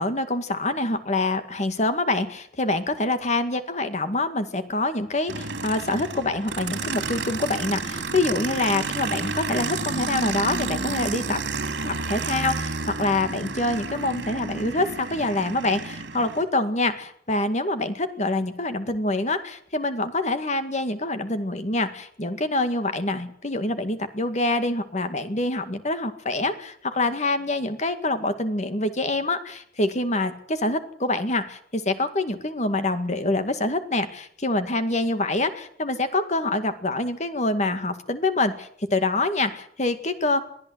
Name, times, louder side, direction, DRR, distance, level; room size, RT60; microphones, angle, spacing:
voice 1, 0.0-11.4 11.8-40.4, left 2 dB, 40° left, 9 dB, 2.1 m, -26 dB
Aircraft, 5.3-16.4, right 4 dB, 80° right, 3.0 m, -31 dB
23.0 x 14.5 x 8.1 m, 0.64 s
head